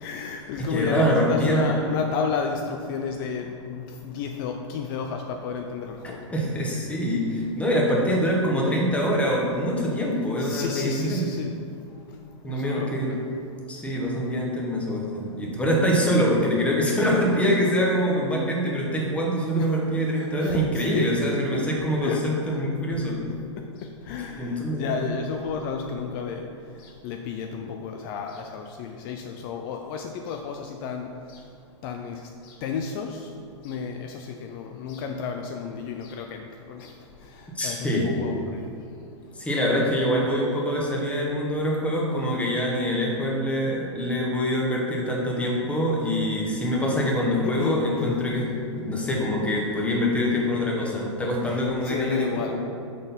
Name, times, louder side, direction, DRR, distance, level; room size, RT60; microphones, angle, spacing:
voice 1, 0.0-2.6 2.9-3.7 4.0-5.9 10.4-11.5 12.5-13.2 19.6-19.7 20.4-21.1 22.0-22.2 24.1-24.4 24.8-26.4 27.0-31.1 31.8-32.1 32.6-33.1 33.6-34.0 34.5-36.3 37.6-38.7 47.4-48.2 51.9-52.6, left 6 dB, 45° left, 4 dB, 0.5 m, -31 dB
voice 2, 0.6-1.8 6.3-11.3 12.4-13.2 13.7-23.2 24.4-25.0 37.5-38.2 39.3-52.6, equal, 10° left, -2 dB, 1.3 m, -24 dB
6.6 x 4.0 x 5.4 m, 2.4 s
hypercardioid pair, 125°, 16 cm